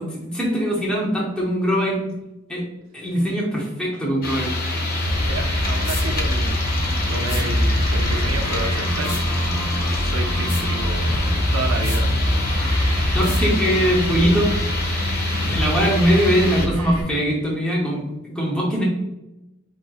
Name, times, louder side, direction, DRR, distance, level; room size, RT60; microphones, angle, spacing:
voice 1, 0.0-2.1 2.5-2.6 2.9-4.5 13.1-14.6 15.4-18.8, equal, 5° left, -4 dB, 0.6 m, -21 dB
sound 1, 4.2-16.7, left 2 dB, 50° left, 0.7 m, -25 dB
voice 2, 4.9-6.6 7.1-9.2 9.7-11.2 11.5-12.1, right 3 dB, 85° right, 4 dB, 0.4 m, -31 dB
sound 2, 5.0-17.0, equal, 50° right, 1.2 m, -25 dB
sound 3, 5.8-6.1 7.3-7.4 9.0-9.2 10.5-10.6 11.8-12.0 13.2-13.4, left 3 dB, 75° left, 1.2 m, -33 dB
4.7 x 3.0 x 2.3 m, 0.95 s
head